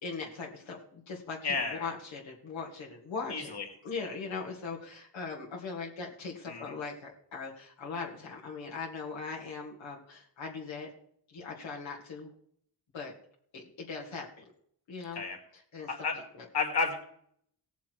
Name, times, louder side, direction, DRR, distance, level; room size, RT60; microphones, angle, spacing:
voice 1, 0.0-3.5 3.8-10.9 11.3-12.3 12.9-13.1 13.5-14.4 14.9-15.2 15.7-15.9 16.3-16.5, left 4 dB, 85° left, -2 dB, 2.5 m, -40 dB
voice 2, 1.4-1.9 3.3-3.6 6.5-6.7 15.1-15.4 15.9-16.1 16.5-17.0, left 4 dB, 60° left, 3 dB, 3.0 m, -31 dB
17.5 x 7.1 x 4.7 m, 0.64 s
cardioid pair, 90°, 45 cm